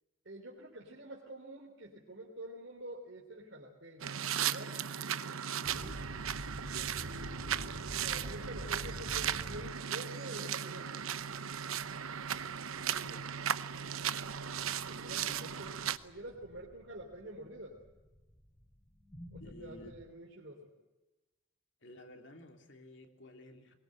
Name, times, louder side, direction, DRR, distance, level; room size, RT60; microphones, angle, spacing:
voice 1, 0.2-4.8 6.5-11.0 12.8-13.3 14.9-15.8 16.0-17.8 19.3-20.7, right 1 dB, 60° right, -2 dB, 3.7 m, -48 dB
sound 1, 4.0-16.0, right 8 dB, 85° right, 0.9 m, -37 dB
voice 2, 5.6-6.1 15.1-15.4 19.4-19.9 21.8-23.7, left 1 dB, 55° left, 4 dB, 3.1 m, -53 dB
sound 2, 5.6-20.0, equal, 15° left, 3.3 m, -50 dB
23.5 x 22.0 x 7.9 m, 1.1 s
head